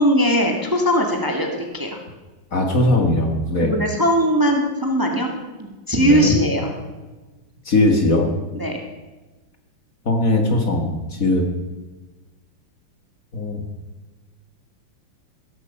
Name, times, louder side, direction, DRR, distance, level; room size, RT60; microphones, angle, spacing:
voice 1, 0.0-1.5 1.7-2.0 3.6-5.3 5.6-6.7 8.5-8.8, equal, 10° right, 2 dB, 1.9 m, -19 dB
voice 2, 2.5-3.7 6.0-6.3 7.7-8.3 10.1-11.5 13.3-13.6, left 2 dB, 45° left, 3 dB, 2.2 m, -19 dB
16.5 x 14.5 x 5.6 m, 1.2 s
omnidirectional pair, 2.2 m